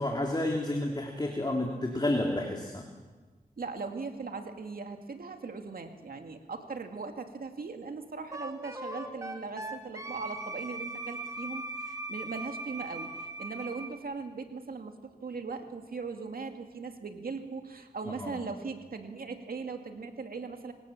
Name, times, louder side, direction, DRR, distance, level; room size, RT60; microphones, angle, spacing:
voice 1, 0.0-2.8 18.1-18.4, left 1 dB, 25° left, 1 dB, 3.1 m, -30 dB
voice 2, 3.6-20.7, right 4 dB, 70° right, 5 dB, 2.3 m, -39 dB
Wind instrument woodwind instrument, 8.3-13.9, right 2 dB, 20° right, 3.3 m, -39 dB
26.5 x 17.5 x 7.3 m, 1.3 s
cardioid pair, 55°, 16 cm